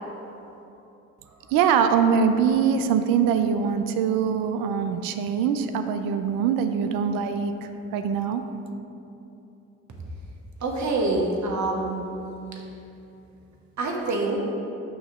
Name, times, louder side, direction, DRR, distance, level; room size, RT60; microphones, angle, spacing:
voice 1, 1.5-8.4, right 7 dB, 70° right, 8 dB, 0.5 m, -23 dB
voice 2, 10.6-12.1 13.8-14.4, right 2 dB, 50° right, 0 dB, 1.2 m, -26 dB
6.3 x 2.9 x 5.6 m, 2.9 s
hypercardioid pair, 50°, 36 cm